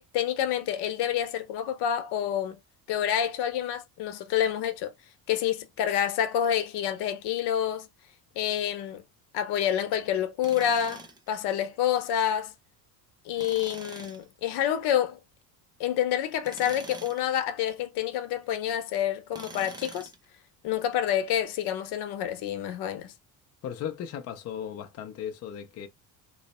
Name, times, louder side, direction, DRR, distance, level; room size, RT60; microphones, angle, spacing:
voice 1, 0.0-2.6 2.9-4.9 5.3-7.9 8.4-9.0 9.3-12.5 13.2-15.2 15.8-20.1 20.6-23.1, left 10 dB, 80° left, 0.9 m, -28 dB
Tools, 10.4-11.3 13.4-14.2 16.4-17.3 19.3-20.2, right 3 dB, 10° right, 0.3 m, -44 dB
voice 2, 23.6-25.9, left 9 dB, 40° left, 0.5 m, -36 dB
3.1 x 2.0 x 4.1 m
cardioid pair, 170°, 39 cm